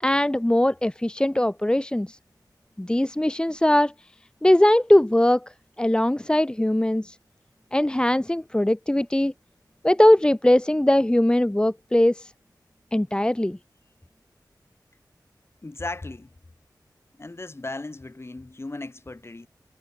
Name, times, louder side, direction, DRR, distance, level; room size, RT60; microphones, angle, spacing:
voice 1, 0.0-2.2 2.8-3.9 4.4-5.4 5.8-7.2 7.7-9.3 9.8-12.3 12.9-13.6, left 1 dB, 10° left, 1.1 m, -20 dB
voice 2, 15.6-16.3 17.2-19.5, left 2 dB, 35° left, 5.1 m, -36 dB
wide cardioid pair, 90°, 8 cm